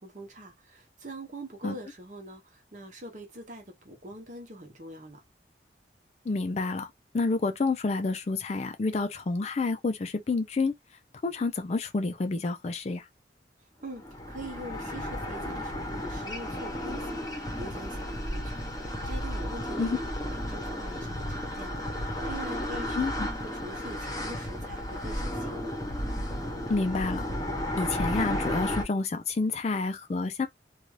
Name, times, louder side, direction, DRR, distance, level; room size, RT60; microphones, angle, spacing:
voice 1, 0.0-5.2 13.8-14.0 14.3-19.9 20.2-23.0 23.4-25.6, right 1 dB, 45° right, 0.9 m, -44 dB
voice 2, 6.3-6.9 7.1-10.7 11.2-13.0 19.8-20.0 22.9-23.3 26.7-27.2 27.8-30.5, left 3 dB, 40° left, 0.4 m, -29 dB
sound 1, 13.9-28.8, left 1 dB, 20° left, 0.8 m, -33 dB
2.6 x 2.3 x 3.1 m
head